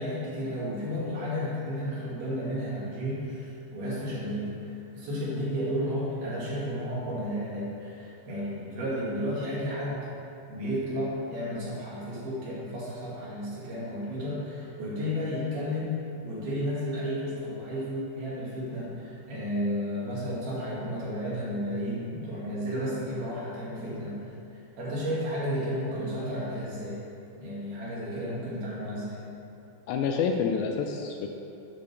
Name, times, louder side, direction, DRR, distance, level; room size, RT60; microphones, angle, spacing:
voice 1, 0.0-10.1 10.5-24.3 24.8-27.0 27.4-29.2, equal, 70° right, -7 dB, 4.0 m, -32 dB
voice 2, 29.9-31.3, left 6 dB, 80° left, 3 dB, 2.2 m, -28 dB
9.0 x 5.2 x 6.7 m, 2.7 s
omnidirectional pair, 4.5 m